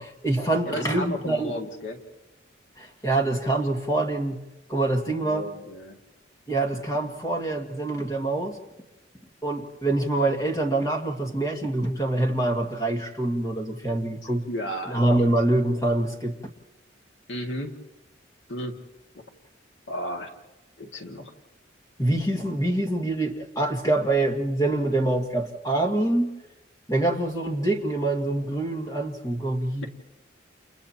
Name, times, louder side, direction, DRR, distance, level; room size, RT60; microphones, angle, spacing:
voice 1, 0.0-1.5 2.8-4.4 4.7-5.5 6.5-8.6 9.4-14.4 14.9-16.4 22.0-26.3 26.9-29.9, right 2 dB, 20° left, 3 dB, 2.0 m, -25 dB
voice 2, 0.7-2.0 5.2-6.0 14.5-15.0 17.3-17.7 18.5-18.8 19.9-20.3 20.8-21.3, equal, 70° left, 2 dB, 2.1 m, -33 dB
30.0 x 30.0 x 2.9 m, 1.0 s
head